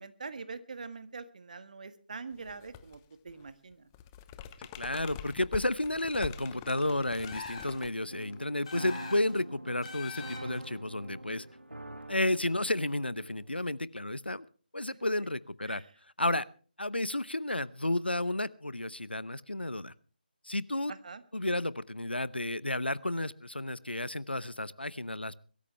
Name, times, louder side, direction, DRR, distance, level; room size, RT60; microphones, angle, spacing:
voice 1, 0.0-3.9 15.7-15.9 20.9-21.2, right 4 dB, 50° right, 11 dB, 1.6 m, -44 dB
sound 1, 2.4-3.0 3.3-8.5, left 9 dB, 15° left, 0.7 m, -45 dB
voice 2, 4.6-11.5 12.1-14.4 14.7-15.8 16.2-16.5 16.8-19.9 20.4-20.9 21.3-25.4, left 1 dB, 85° left, 18 dB, 0.9 m, -32 dB
sound 2, 7.2-7.9 8.6-9.4 9.8-10.7, left 5 dB, 40° left, 3.9 m, -43 dB
sound 3, 8.1-13.7, right 1 dB, 85° right, 1.6 m, -46 dB
22.5 x 13.5 x 3.3 m, 0.40 s
figure-of-eight pair, 155°, 5 cm